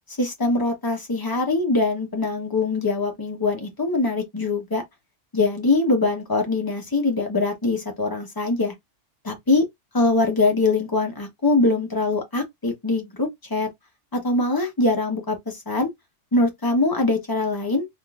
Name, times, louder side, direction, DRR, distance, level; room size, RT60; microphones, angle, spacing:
voice 1, 0.2-4.8 5.3-8.7 9.2-9.6 9.9-13.7 14.1-15.9 16.3-17.9, left 3 dB, 20° left, 0.8 m, -23 dB
3.6 x 2.6 x 2.3 m
omnidirectional pair, 1.2 m